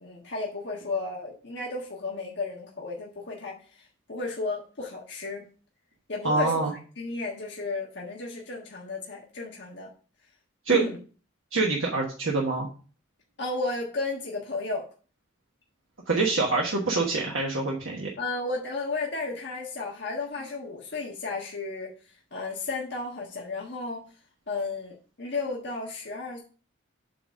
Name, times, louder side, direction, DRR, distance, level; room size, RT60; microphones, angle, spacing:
voice 1, 0.0-5.4 6.1-6.6 7.0-9.9 10.7-11.0 13.4-14.9 18.2-21.9 22.3-24.0 24.5-26.4, left 3 dB, 55° left, -2 dB, 1.4 m, -33 dB
voice 2, 6.2-6.7 10.6-10.8 11.5-12.7 16.1-18.1, right 3 dB, 70° right, -1 dB, 1.3 m, -25 dB
7.6 x 4.0 x 5.0 m, 0.39 s
head